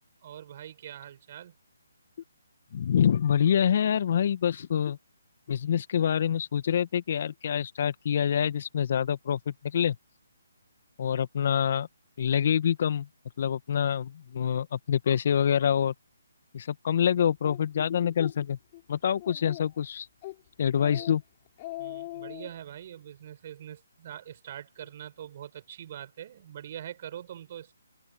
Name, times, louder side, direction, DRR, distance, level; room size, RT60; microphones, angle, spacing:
voice 1, 0.2-1.6 20.9-21.1 21.8-27.7, right 10 dB, 40° right, 7.7 m, -43 dB
voice 2, 2.7-5.0 5.5-9.9 11.0-11.9 12.2-13.1 13.4-15.9 16.5-18.6 18.9-20.1 20.6-21.2, left 8 dB, 50° left, 1.6 m, -26 dB
Speech, 17.4-17.6 18.0-18.3 18.7-18.8 19.2-19.8 20.2-20.4 20.7-21.2 21.5-22.5, left 18 dB, 30° left, 6.6 m, -40 dB
open air
figure-of-eight pair, 150°, 0 cm